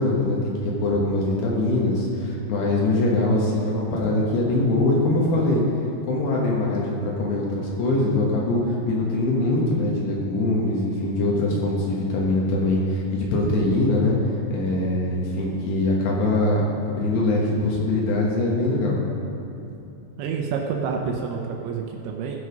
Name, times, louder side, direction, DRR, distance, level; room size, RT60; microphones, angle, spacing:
voice 1, 0.0-5.6 6.1-14.2 14.5-19.0, left 2 dB, 75° left, -3 dB, 3.4 m, -22 dB
voice 2, 20.2-22.4, right 5 dB, 85° right, 1 dB, 3.1 m, -28 dB
16.5 x 6.4 x 5.1 m, 2.9 s
omnidirectional pair, 5.3 m